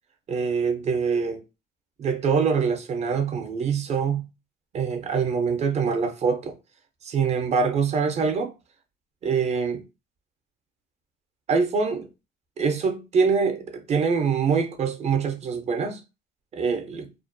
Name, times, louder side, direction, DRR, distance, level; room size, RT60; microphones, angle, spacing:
voice 1, 0.3-1.4 2.0-4.3 4.7-6.6 7.0-8.5 9.2-9.8 11.5-12.1 12.6-16.0 16.5-17.1, right 5 dB, 40° right, 0.5 m, -24 dB
2.4 x 2.1 x 2.5 m
cardioid pair, 110°, 17 cm